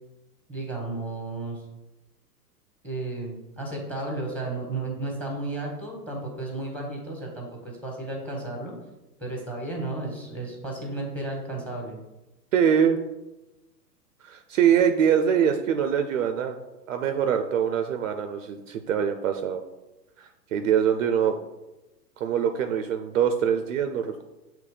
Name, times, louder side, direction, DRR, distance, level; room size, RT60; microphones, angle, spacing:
voice 1, 0.5-1.6 2.8-8.7 9.2-12.0, right 2 dB, 5° left, 0 dB, 1.4 m, -33 dB
voice 2, 12.5-13.0 14.2-16.6 16.9-19.6 20.2-21.4 22.2-24.2, right 8 dB, 50° right, 6 dB, 0.6 m, -23 dB
6.9 x 3.2 x 4.9 m, 1.0 s
hypercardioid pair, 120°, 50 cm